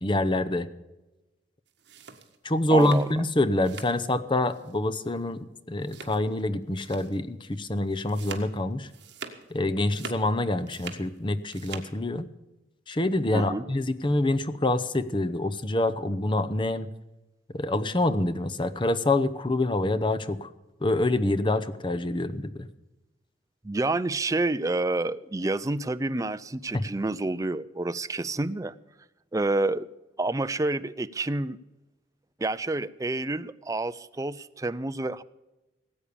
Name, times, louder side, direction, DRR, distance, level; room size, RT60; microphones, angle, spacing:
voice 1, 0.0-0.7 2.4-8.9 9.5-12.2 12.9-16.9 17.5-20.5 20.8-22.7 26.7-26.8, left 1 dB, 25° left, 11 dB, 0.7 m, -26 dB
sound 1, 1.7-4.1 4.4-4.8 5.0-5.2 5.8-6.4 6.8-7.2 7.5-9.5 9.8-11.1 11.4-11.9, right 5 dB, 65° right, 1.7 m, -43 dB
voice 2, 2.7-3.1 13.3-13.6 23.6-28.7 29.3-29.9 30.2-31.6 32.4-35.2, right 2 dB, 15° right, 13 dB, 0.4 m, -28 dB
18.5 x 8.6 x 6.9 m, 1.0 s
head